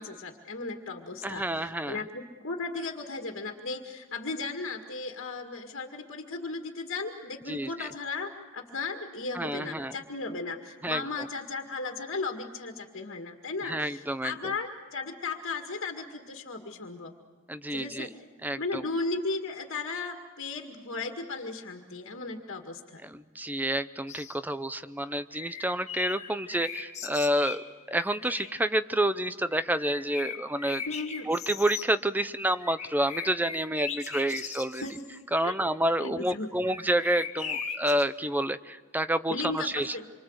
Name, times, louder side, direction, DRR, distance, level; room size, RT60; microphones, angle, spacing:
voice 1, 0.0-17.1 17.7-18.1 18.6-23.0 30.9-31.3 34.8-34.9 35.4-35.5 36.0-36.5 39.3-40.1, left 3 dB, 55° left, 3 dB, 2.0 m, -36 dB
voice 2, 1.2-2.0 7.5-7.9 9.3-9.9 10.8-11.3 13.6-14.5 17.5-18.1 18.4-18.8 23.0-30.8 31.3-34.8 35.3-40.0, right 1 dB, 10° right, 13 dB, 0.7 m, -29 dB
sound 1, 24.1-24.4 25.1-28.6 29.5-31.9 32.5-35.2 36.6-38.1, left 6 dB, 30° left, 1.9 m, -39 dB
27.0 x 25.0 x 8.0 m, 1.4 s
head